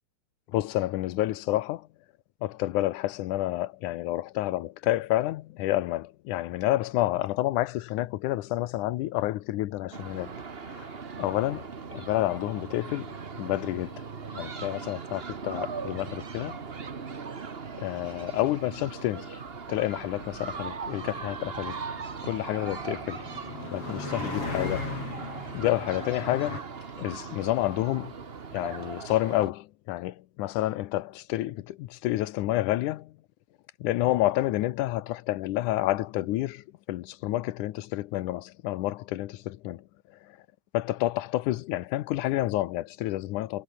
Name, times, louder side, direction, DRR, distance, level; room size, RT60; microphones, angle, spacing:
voice 1, 0.5-1.9 2.4-10.3 10.6-13.1 13.4-14.0 14.3-16.6 17.8-19.4 19.7-21.8 22.2-23.3 23.7-24.9 25.5-26.6 27.0-28.1 28.5-33.1 33.8-39.8 40.7-43.6, left 15 dB, 90° left, 2.4 m, -29 dB
sound 1, 9.9-29.5, right 5 dB, 70° right, 0.5 m, -39 dB
sound 2, 18.1-26.6, left 3 dB, 50° left, 8.1 m, -39 dB
omnidirectional pair, 3.4 m